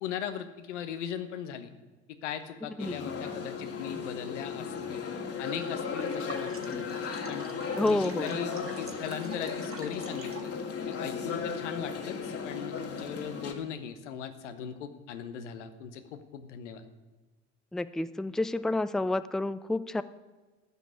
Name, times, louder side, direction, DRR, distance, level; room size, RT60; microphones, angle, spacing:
voice 1, 0.0-1.7 2.2-5.0 5.4-6.8 7.3-7.5 7.8-10.5 10.9-16.8, left 8 dB, 85° left, 9 dB, 1.2 m, -39 dB
sound 1, 2.8-13.5, left 6 dB, 40° left, 2.1 m, -36 dB
sound 2, 5.8-10.6, right 5 dB, 40° right, 2.1 m, -48 dB
voice 2, 7.8-8.3 17.7-20.0, left 2 dB, ahead, 14 dB, 0.5 m, -29 dB
13.5 x 6.2 x 9.1 m, 1.3 s
hypercardioid pair, 65°, 35 cm